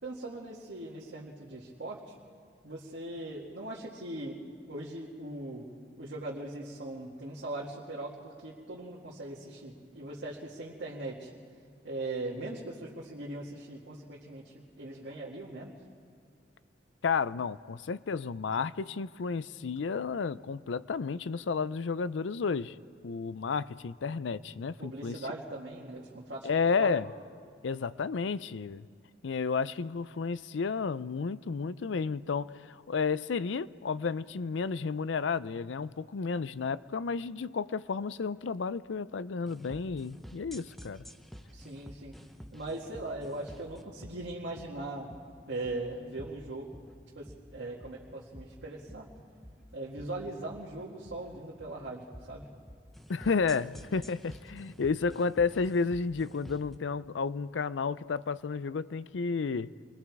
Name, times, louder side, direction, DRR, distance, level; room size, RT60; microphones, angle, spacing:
voice 1, 0.0-2.1 2.6-4.4 4.7-5.7 6.0-11.3 11.8-15.7 24.8-26.5 26.7-27.0 41.5-42.1 42.5-45.1 45.5-46.7 47.1-49.1 49.7-52.5, right 2 dB, 70° right, 2.1 m, -40 dB
voice 2, 17.0-22.7 23.0-25.2 26.4-27.0 27.6-28.9 29.2-41.0 53.1-59.7, left 5 dB, 85° left, 0.5 m, -32 dB
sound 1, 39.5-56.7, equal, ahead, 0.9 m, -50 dB
28.5 x 22.0 x 4.8 m
head